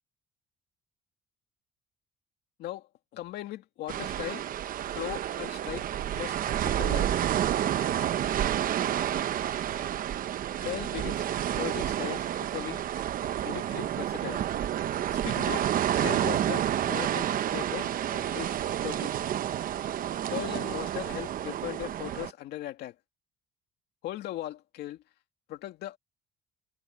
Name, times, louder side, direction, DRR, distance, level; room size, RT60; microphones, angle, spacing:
voice 1, 2.6-4.4 4.9-7.2 10.6-12.9 13.4-14.4 15.1-18.6 18.8-19.1 20.3-23.0 24.0-25.0 25.5-26.0, left 14 dB, 75° left, 2.4 m, -38 dB
sound 1, 3.9-22.3, right 11 dB, 55° right, 0.9 m, -30 dB
cardioid pair, 110°, 17 cm